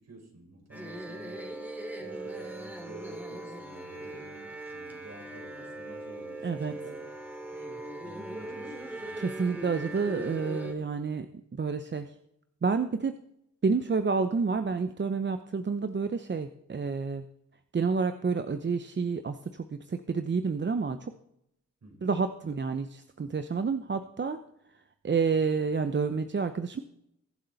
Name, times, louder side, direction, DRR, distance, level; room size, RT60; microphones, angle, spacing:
voice 1, 0.0-1.5 2.0-7.0 8.0-9.0 21.8-22.2, right 2 dB, 55° right, 2 dB, 5.1 m, -50 dB
sound 1, 0.7-10.7, right 1 dB, 5° right, 2.8 m, -40 dB
voice 2, 6.4-6.7 9.1-11.3 11.5-12.1 12.6-13.2 13.6-17.2 17.7-21.1 22.0-24.4 25.0-26.8, right 5 dB, 35° right, 9 dB, 0.9 m, -29 dB
22.0 x 7.5 x 4.1 m, 0.78 s
cardioid pair, 55°, 32 cm